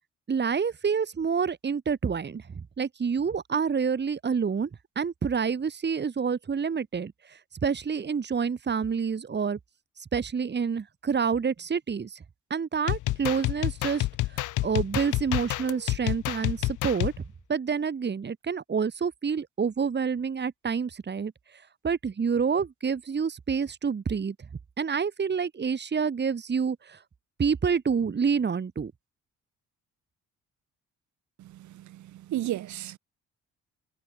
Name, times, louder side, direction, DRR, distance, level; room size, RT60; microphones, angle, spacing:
voice 1, 0.3-4.7 5.0-9.6 10.0-12.2 12.5-17.1 17.5-24.5 24.8-27.0 27.4-28.9, right 6 dB, 35° right, 2.2 m, -28 dB
sound 1, 12.9-17.2, left 17 dB, 85° left, 0.9 m, -29 dB
voice 2, 31.4-33.0, right 13 dB, 70° right, 1.2 m, -34 dB
cardioid pair, 90°, 30 cm